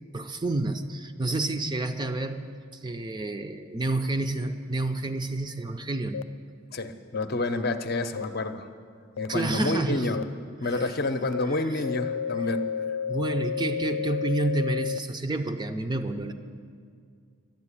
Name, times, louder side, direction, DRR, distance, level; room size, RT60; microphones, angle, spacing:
voice 1, 0.1-2.4 2.7-6.2 9.3-10.1 10.6-10.9 11.5-11.8 12.4-12.5 13.1-16.3, right 2 dB, 20° right, 7 dB, 0.5 m, -29 dB
sound 1, 6.1-6.2 7.1-7.2 8.2-8.3 9.2-9.3 10.1-10.2 10.8-10.9 11.3-11.4 11.8-15.0, left 7 dB, 85° left, 0.4 m, -31 dB
voice 2, 6.7-8.7 9.2-10.2 10.6-12.6, left 2 dB, 50° left, 7 dB, 0.7 m, -29 dB
12.0 x 8.0 x 9.8 m, 2.2 s
head